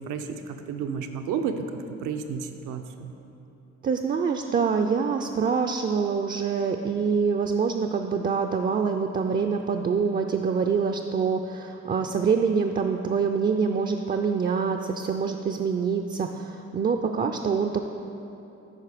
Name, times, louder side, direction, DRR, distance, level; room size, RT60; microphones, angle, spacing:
voice 1, 0.0-1.7 2.0-3.1, right 6 dB, 85° right, 7 dB, 0.6 m, -31 dB
voice 2, 3.8-17.9, right 5 dB, 30° right, 5 dB, 0.3 m, -25 dB
10.5 x 4.1 x 4.9 m, 2.9 s
cardioid pair, 90°, 30 cm